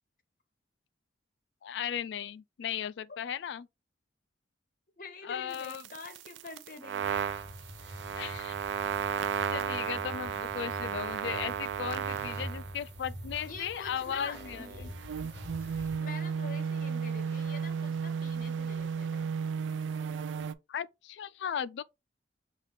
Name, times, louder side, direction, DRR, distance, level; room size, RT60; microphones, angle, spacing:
voice 1, 1.6-3.7 5.2-5.8 8.2-8.5 9.5-14.9 20.7-21.8, left 8 dB, 70° left, 0.3 m, -36 dB
voice 2, 5.0-7.3 7.8-8.1 13.5-14.9 15.2-15.3 16.0-19.3, left 4 dB, 50° left, 0.9 m, -46 dB
sound 1, 5.5-12.8 13.9-20.5, right 7 dB, 85° right, 0.4 m, -34 dB
sound 2, 7.0-16.0, equal, 70° right, 1.2 m, -45 dB
sound 3, 11.5-12.6 13.2-14.4 14.9-16.2 16.5-17.9, equal, 15° left, 1.2 m, -62 dB
5.5 x 2.5 x 3.3 m
head